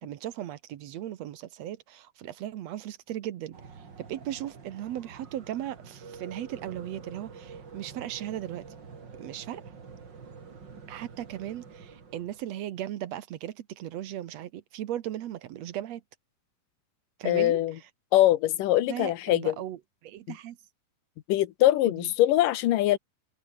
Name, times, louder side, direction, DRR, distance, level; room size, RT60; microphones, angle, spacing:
voice 1, 0.0-8.7 9.2-9.6 10.9-16.0 17.2-17.6 18.9-20.6 21.9-22.1, right 12 dB, 65° right, 2.0 m, -37 dB
sound 1, 3.5-12.5, right 5 dB, 35° right, 2.8 m, -47 dB
voice 2, 17.3-17.8 18.1-19.6 21.3-23.0, left 14 dB, 80° left, 2.8 m, -23 dB
open air
omnidirectional pair, 3.8 m